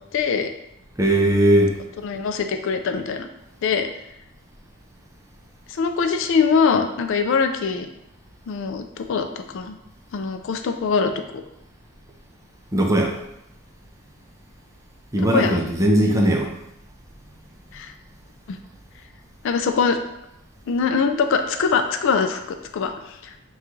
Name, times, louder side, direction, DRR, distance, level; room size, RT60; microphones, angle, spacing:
voice 1, 0.1-0.5 2.0-3.3 3.6-3.9 5.7-7.9 8.5-9.8 10.1-11.4 15.3-15.6 17.7-17.9 18.5-18.6 19.4-20.0 20.7-23.3, left 5 dB, 60° left, 6 dB, 0.3 m, -23 dB
voice 2, 1.0-1.7 12.7-13.1 15.1-16.5, right 1 dB, 15° right, 1 dB, 0.5 m, -18 dB
5.8 x 2.3 x 3.1 m, 0.82 s
head